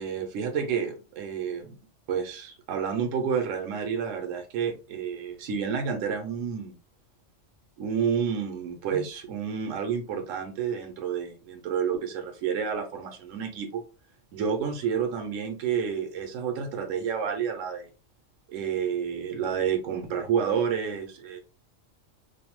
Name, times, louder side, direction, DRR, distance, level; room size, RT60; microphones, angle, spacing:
voice 1, 0.0-1.8 2.1-6.8 7.8-13.8 14.3-17.9 18.5-21.4, right 7 dB, 90° right, 4 dB, 1.0 m, -30 dB
2.5 x 2.0 x 2.9 m, 0.34 s
omnidirectional pair, 1.3 m